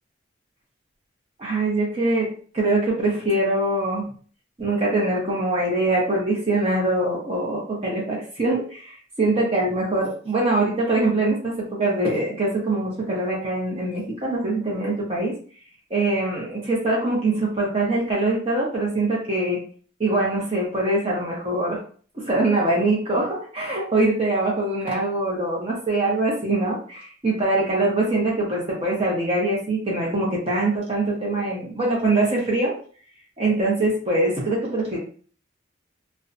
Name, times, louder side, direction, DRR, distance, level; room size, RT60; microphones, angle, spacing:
voice 1, 1.4-4.1 4.6-15.3 15.9-19.6 20.0-21.8 22.1-32.7 33.4-35.0, right 2 dB, 30° right, -4 dB, 0.7 m, -23 dB
2.5 x 2.1 x 2.5 m, 0.43 s
head